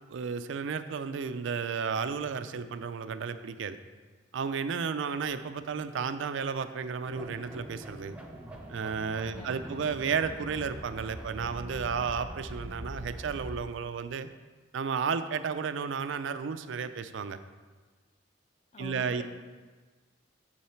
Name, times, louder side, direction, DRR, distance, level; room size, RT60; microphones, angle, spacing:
voice 1, 0.1-3.8 4.3-8.2 8.7-14.3 14.7-17.4 18.8-19.2, right 6 dB, 70° right, 11 dB, 0.4 m, -33 dB
sound 1, 7.1-13.6, right 1 dB, 5° right, 0.7 m, -43 dB
voice 2, 9.2-9.8 18.7-19.2, left 3 dB, 35° left, 4 dB, 0.7 m, -45 dB
8.6 x 4.7 x 4.4 m, 1.4 s
head